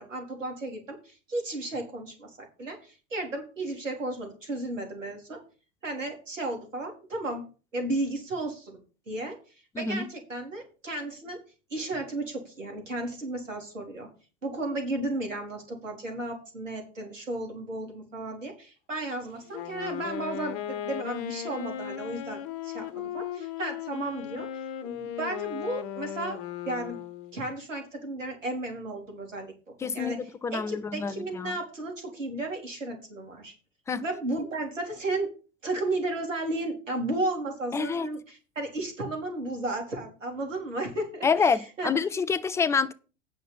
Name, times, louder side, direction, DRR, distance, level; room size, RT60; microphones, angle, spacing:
voice 1, 0.0-5.4 5.8-7.4 7.7-8.8 9.1-9.4 9.8-11.4 11.7-14.1 14.4-24.5 24.8-26.4 26.6-27.0 27.3-33.5 34.0-35.3 35.6-42.1, right 2 dB, 75° right, 4.2 m, -34 dB
voice 2, 9.8-10.1 29.8-31.5 33.9-34.0 37.7-38.1 41.2-42.9, left 5 dB, 10° left, 0.5 m, -27 dB
Wind instrument woodwind instrument, 19.5-27.4, left 10 dB, 45° left, 1.2 m, -36 dB
9.2 x 6.9 x 5.7 m
figure-of-eight pair, 95°, 38 cm